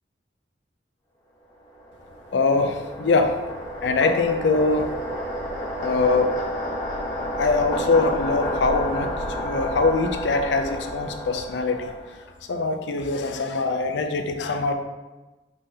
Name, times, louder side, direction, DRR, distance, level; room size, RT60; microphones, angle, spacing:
sound 1, 1.6-12.3, equal, 25° left, 1.3 m, -31 dB
voice 1, 2.3-3.3 3.8-4.9 5.8-6.4 7.4-9.1 9.4-11.9 12.5-14.7, left 3 dB, 70° left, 6 dB, 0.5 m, -23 dB
4.9 x 3.8 x 2.8 m, 1.1 s
head